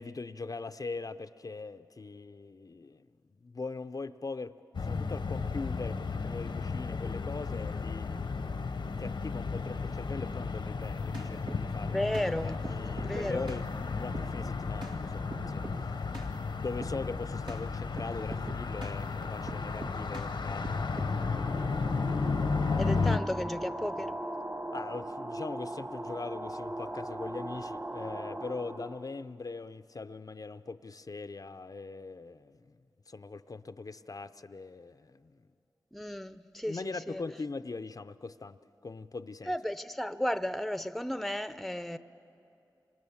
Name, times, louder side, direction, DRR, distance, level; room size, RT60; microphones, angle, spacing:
voice 1, 0.0-3.1 3.4-4.5 4.8-12.0 12.4-16.2 16.6-21.6 24.7-32.8 33.1-35.4 36.7-38.6 38.8-39.5, left 3 dB, 50° left, 0.6 m, -41 dB
sound 1, 4.7-23.2, left 4 dB, 85° left, 1.0 m, -33 dB
sound 2, 10.8-11.7 12.1-12.3 12.6-13.7 14.1-14.3 14.8-15.0 15.3-15.8 16.1-16.3 16.8-17.0 17.5-17.6 18.0-19.0 19.5-20.3 20.6-21.2, right 1 dB, 85° right, 2.4 m, -42 dB
voice 2, 11.8-12.6 13.0-13.5 22.8-24.1 35.9-37.2 39.5-42.0, left 1 dB, ahead, 0.7 m, -34 dB
sound 3, 20.8-29.1, right 1 dB, 25° right, 1.4 m, -39 dB
26.5 x 25.5 x 7.2 m
cardioid pair, 50°, 8 cm